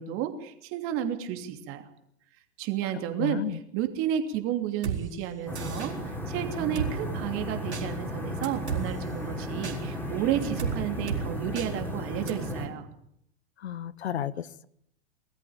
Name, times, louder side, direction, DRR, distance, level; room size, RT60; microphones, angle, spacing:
voice 1, 0.0-1.9 2.6-12.9, right 10 dB, 40° right, 6 dB, 2.9 m, -32 dB
voice 2, 3.2-3.6 13.6-14.6, left 9 dB, 75° left, 18 dB, 1.0 m, -33 dB
Drum kit, 4.8-5.0 5.6-5.9 6.8-6.9 7.7-7.8 8.4-8.8 9.6-9.8 10.6-10.7 11.1-11.2 11.6-11.7 12.3-12.4, right 8 dB, 85° right, 4.2 m, -31 dB
sound 1, 5.5-12.7, equal, 5° left, 5.4 m, -34 dB
21.0 x 14.0 x 8.8 m, 0.74 s
hypercardioid pair, 105°, 33 cm